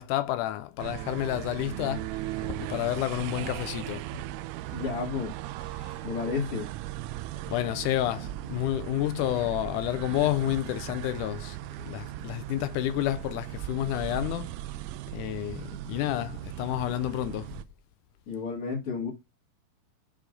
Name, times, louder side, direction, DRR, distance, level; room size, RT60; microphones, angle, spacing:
voice 1, 0.0-4.1 5.8-6.0 7.5-14.6 15.1-17.5, left 14 dB, 80° left, 2.0 m, -30 dB
sound 1, 0.8-17.6, right 16 dB, 80° right, 1.9 m, -38 dB
voice 2, 4.7-5.3 6.0-6.7 18.3-19.1, left 5 dB, 45° left, 2.8 m, -31 dB
sound 2, 8.2-8.8 9.4-10.1 13.0-15.6, right 11 dB, 55° right, 1.4 m, -45 dB
6.3 x 5.7 x 3.8 m
omnidirectional pair, 3.8 m